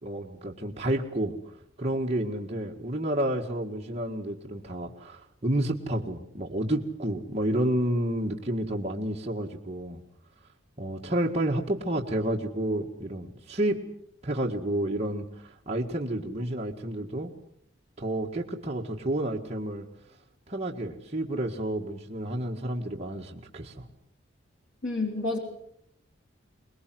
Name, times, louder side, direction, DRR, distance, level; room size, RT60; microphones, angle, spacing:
voice 1, 0.0-1.4 1.8-10.0 10.8-13.8 14.2-17.3 18.0-19.9 20.5-23.9, right 1 dB, 35° right, -1 dB, 1.9 m, -30 dB
voice 2, 24.8-25.4, left 2 dB, 70° left, 1 dB, 4.0 m, -29 dB
24.0 x 21.0 x 7.8 m, 0.68 s
head